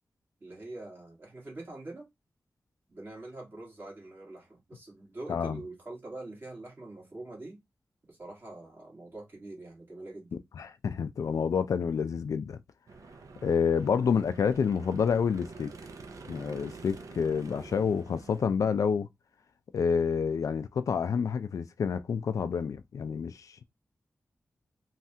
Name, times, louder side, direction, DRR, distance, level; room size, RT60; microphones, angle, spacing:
voice 1, 0.4-2.1 2.9-7.6 8.1-10.3, right 2 dB, 40° right, 1.6 m, -44 dB
voice 2, 5.3-5.6 10.6-12.6 13.4-15.7 16.3-19.1 19.7-23.6, left 6 dB, 90° left, 0.3 m, -28 dB
sound 1, 12.9-18.5, right 3 dB, 80° right, 0.5 m, -47 dB
3.2 x 2.3 x 2.7 m
wide cardioid pair, 135°, 6 cm